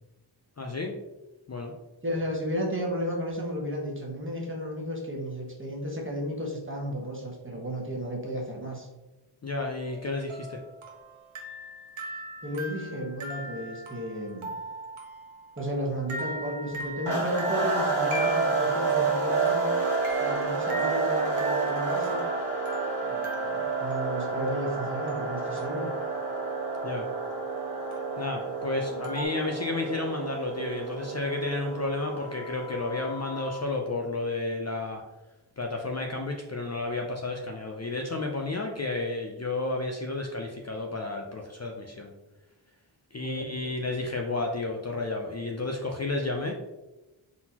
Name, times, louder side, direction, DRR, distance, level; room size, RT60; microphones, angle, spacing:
voice 1, 0.6-0.9 1.5-1.7 9.4-10.6 26.8-27.0 28.2-35.0 35.6-42.1 43.1-46.5, left 2 dB, 35° left, 1 dB, 0.5 m, -31 dB
voice 2, 2.0-8.9 12.4-14.5 15.6-19.7 20.2-22.2 23.0-25.9 28.9-29.0 43.2-43.7, equal, 25° right, -1 dB, 1.2 m, -33 dB
sound 1, 9.8-26.2 27.9-28.4 29.0-29.2, right 1 dB, 80° right, 1.0 m, -40 dB
sound 2, 17.1-33.7, right 4 dB, 60° right, 1.3 m, -30 dB
4.0 x 3.9 x 2.8 m, 1.0 s
wide cardioid pair, 65°, 49 cm